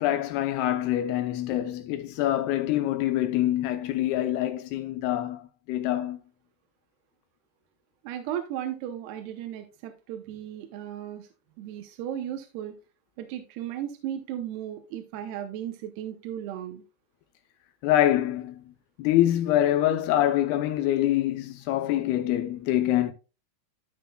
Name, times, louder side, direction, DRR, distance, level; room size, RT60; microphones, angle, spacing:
voice 1, 0.0-6.2 17.8-18.6 19.0-23.1, left 13 dB, 80° left, 2.4 m, -25 dB
voice 2, 8.0-11.3 11.6-12.7 13.2-16.8, right 11 dB, 80° right, 2.8 m, -35 dB
12.0 x 5.9 x 2.3 m
omnidirectional pair, 4.9 m